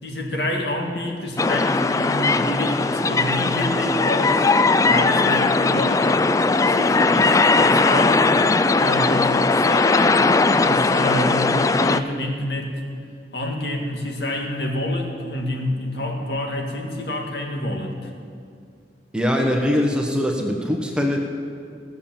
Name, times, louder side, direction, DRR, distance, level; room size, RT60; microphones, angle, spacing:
voice 1, 0.0-6.1 6.7-8.3 8.7-10.2 10.6-12.8 13.3-18.1, left 1 dB, 70° left, 1 dB, 1.9 m, -27 dB
sound 1, 1.4-12.0, left 3 dB, 20° left, 0.3 m, -19 dB
voice 2, 19.1-21.2, left 1 dB, 5° right, 1 dB, 1.0 m, -22 dB
16.0 x 7.0 x 7.3 m, 2.2 s
head